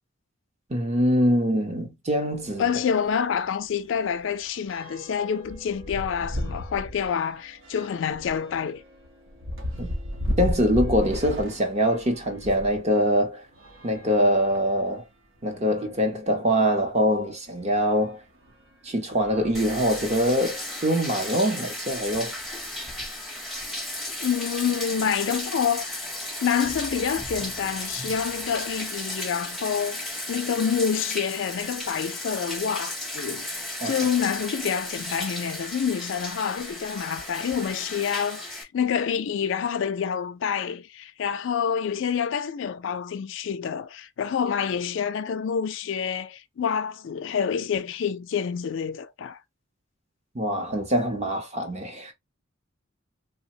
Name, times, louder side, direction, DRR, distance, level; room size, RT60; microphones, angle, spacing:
voice 1, 0.7-2.7 9.8-9.9 10.4-13.4 13.8-15.0 15.4-18.2 18.8-22.3 33.8-34.0 50.3-52.1, equal, 30° right, 0.7 m, -24 dB
sound 1, 2.3-2.5 2.9-3.0 3.3-12.8 13.5-14.9 15.5-15.6 15.9-16.0 17.7-17.8 18.4-18.7 19.1-20.4, left 1 dB, 65° right, 0.8 m, -34 dB
voice 2, 2.6-8.8 24.2-26.1 26.4-49.4, left 7 dB, 60° left, 0.3 m, -27 dB
Bathtub (filling or washing), 19.5-38.6, left 1 dB, ahead, 0.7 m, -34 dB
3.2 x 2.1 x 2.7 m
head